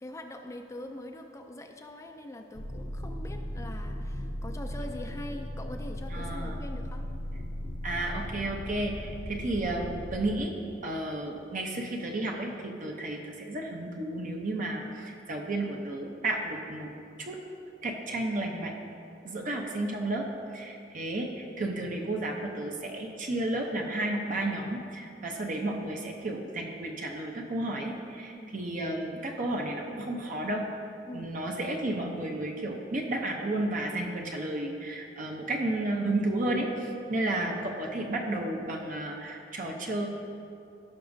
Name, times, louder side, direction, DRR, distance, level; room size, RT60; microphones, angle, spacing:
voice 1, 0.0-7.1 28.4-28.6 31.1-31.3, left 1 dB, 15° left, 4 dB, 0.4 m, -43 dB
sound 1, 2.5-10.4, equal, 60° left, 0.9 m, -37 dB
voice 2, 6.1-6.6 7.8-10.6 10.8-16.9 17.2-17.4 17.8-18.7 19.2-30.7 31.1-40.1, right 1 dB, 45° right, 1 dB, 0.7 m, -32 dB
16.0 x 5.9 x 2.6 m, 2.7 s
head